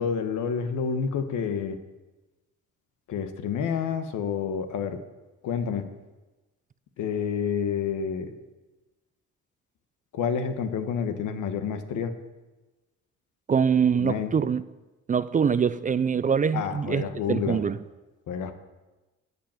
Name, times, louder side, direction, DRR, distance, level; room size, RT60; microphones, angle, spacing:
voice 1, 0.0-1.8 3.1-5.0 5.4-5.9 7.0-8.3 10.1-12.1 13.9-14.3 16.5-17.6 18.3-18.5, left 6 dB, 80° left, 1.3 m, -29 dB
voice 2, 13.5-14.6 15.1-17.8, right 6 dB, 25° right, 0.4 m, -24 dB
13.0 x 5.4 x 8.8 m
cardioid pair, 90°, 30 cm